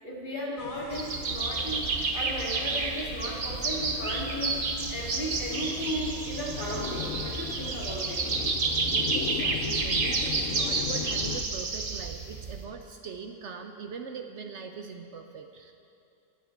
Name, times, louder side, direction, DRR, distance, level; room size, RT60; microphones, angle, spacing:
voice 1, 0.0-8.2, equal, 35° left, -4 dB, 2.3 m, -35 dB
sound 1, 0.6-11.4, left 9 dB, 90° left, 1.0 m, -39 dB
sound 2, 0.9-12.6, right 3 dB, 45° right, 1.0 m, -30 dB
voice 2, 8.9-15.7, right 5 dB, 65° right, 5 dB, 0.9 m, -41 dB
22.0 x 8.1 x 4.5 m, 2.7 s
omnidirectional pair, 1.4 m